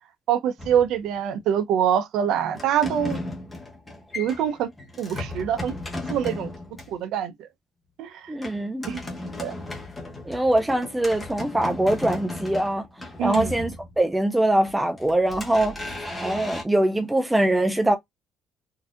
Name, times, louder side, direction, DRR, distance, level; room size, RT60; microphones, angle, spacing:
voice 1, 0.3-3.2 4.2-4.7 5.0-6.5 6.9-7.3 8.0-8.3 8.9-9.0 9.4-9.5 13.2-13.5, right 9 dB, 65° right, 0.6 m, -25 dB
sound 1, 0.6-1.4 2.5-7.0 8.4-14.2 14.6-16.6, left 2 dB, 10° left, 1.0 m, -35 dB
voice 2, 8.3-8.9 10.3-12.9 13.2-16.0 16.2-18.0, right 1 dB, 5° right, 0.3 m, -23 dB
3.9 x 2.7 x 2.4 m
cardioid pair, 175°, 0 cm